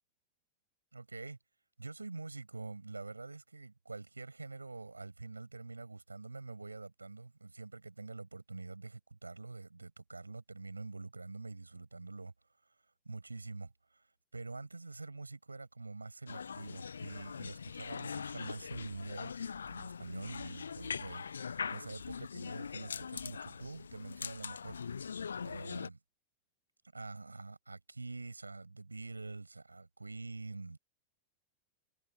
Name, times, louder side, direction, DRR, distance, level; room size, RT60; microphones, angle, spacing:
voice 1, 0.9-1.4 1.8-12.3 13.1-24.8 25.4-26.0 26.9-30.8, right 3 dB, 80° right, 7.1 m, -46 dB
sound 1, 16.3-25.9, left 6 dB, 70° left, 0.4 m, -42 dB
figure-of-eight pair, 90°, 0 cm